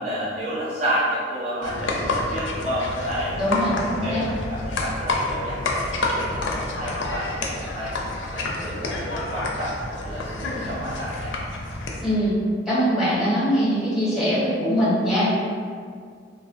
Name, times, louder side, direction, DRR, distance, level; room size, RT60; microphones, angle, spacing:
voice 1, 0.0-3.4 4.0-4.2 4.5-7.9 8.3-11.3, equal, 35° right, -8 dB, 0.4 m, -30 dB
sound 1, 1.6-12.0, left 2 dB, 85° left, 0.4 m, -28 dB
voice 2, 3.4-4.2 12.0-12.3 12.7-15.4, equal, 5° right, -12 dB, 1.0 m, -22 dB
3.1 x 2.1 x 2.6 m, 2.1 s
head